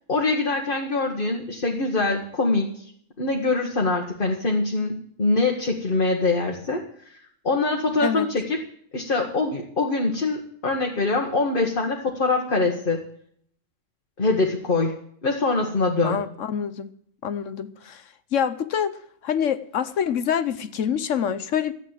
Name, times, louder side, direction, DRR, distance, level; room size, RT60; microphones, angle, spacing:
voice 1, 0.1-2.8 3.2-7.2 7.4-8.6 8.9-13.0 14.2-16.2, left 3 dB, 40° left, 1 dB, 1.7 m, -24 dB
voice 2, 16.0-16.9 17.2-18.0 18.3-19.0 19.2-21.7, left 8 dB, 65° left, 13 dB, 1.1 m, -26 dB
13.5 x 9.0 x 7.5 m, 0.64 s
omnidirectional pair, 1.5 m